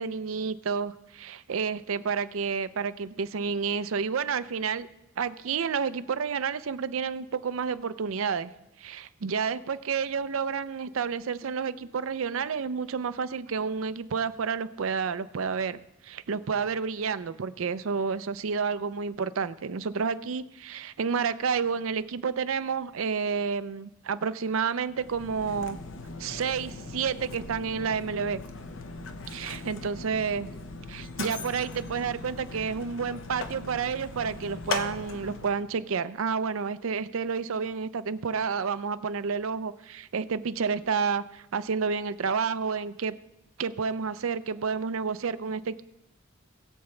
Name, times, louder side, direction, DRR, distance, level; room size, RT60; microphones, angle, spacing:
voice 1, 0.0-4.9 5.2-8.5 8.8-15.8 16.0-25.8 26.2-28.4 29.3-30.5 30.9-43.2 43.6-45.8, right 5 dB, 70° right, 13 dB, 0.5 m, -30 dB
Mechanisms, 24.9-35.6, left 3 dB, 65° left, 0.9 m, -39 dB
20.5 x 7.0 x 3.3 m, 0.89 s
head